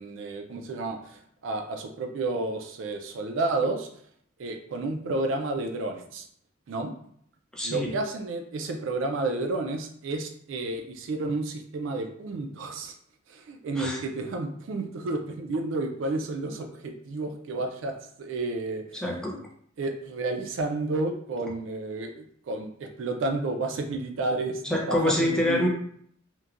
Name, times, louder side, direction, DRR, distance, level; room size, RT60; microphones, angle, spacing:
voice 1, 0.0-3.9 4.4-6.3 6.7-6.9 7.6-12.9 13.3-19.0 19.8-24.6 24.9-25.7, right 2 dB, 70° right, 4 dB, 0.4 m, -31 dB
voice 2, 7.5-8.0 13.8-14.0 18.9-19.4 24.6-25.7, left 1 dB, 5° left, -2 dB, 0.5 m, -26 dB
3.0 x 2.2 x 2.4 m, 0.65 s
head